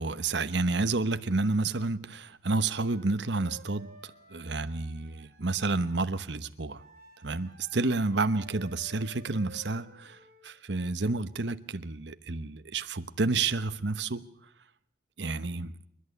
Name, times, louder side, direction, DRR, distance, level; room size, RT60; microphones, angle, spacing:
voice 1, 0.0-3.9 4.3-6.8 7.2-10.2 10.4-14.2 15.2-15.7, right 3 dB, 70° right, 1.0 m, -30 dB
Wind instrument woodwind instrument, 2.5-6.0 6.8-10.5, right 1 dB, 50° right, 5.1 m, -54 dB
28.0 x 11.5 x 9.7 m
head